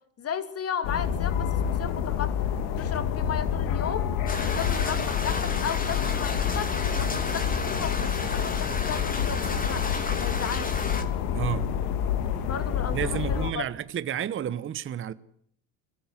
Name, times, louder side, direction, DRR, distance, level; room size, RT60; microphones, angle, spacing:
voice 1, 0.2-4.1 4.4-10.7 12.4-13.6, left 8 dB, 35° left, 3.1 m, -35 dB
sound 1, 0.8-13.5, left 8 dB, 70° left, 2.8 m, -28 dB
sound 2, 4.3-11.0, left 3 dB, 20° left, 3.1 m, -33 dB
voice 2, 11.3-11.7 12.9-15.1, right 10 dB, 30° right, 1.0 m, -31 dB
22.5 x 15.5 x 9.8 m
supercardioid pair, 100°, 41 cm